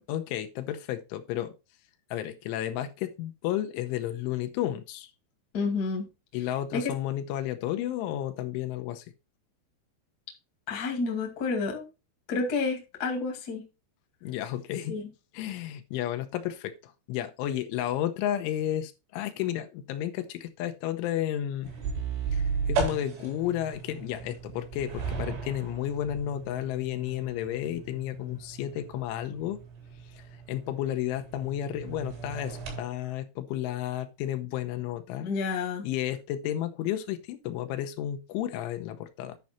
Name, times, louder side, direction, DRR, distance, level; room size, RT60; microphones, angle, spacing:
voice 1, 0.1-1.5 2.1-5.1 6.3-9.0 14.2-14.9 15.3-21.7 22.3-29.6 30.1-35.3 35.8-39.4, left 12 dB, 85° left, 3.2 m, -32 dB
voice 2, 5.5-6.1 6.7-6.9 10.7-11.9 12.3-13.6 14.9-15.0 35.2-35.9, left 4 dB, 40° left, 1.4 m, -29 dB
sound 1, 21.6-32.8, right 5 dB, 75° right, 5.9 m, -36 dB
10.5 x 5.4 x 4.2 m
omnidirectional pair, 5.6 m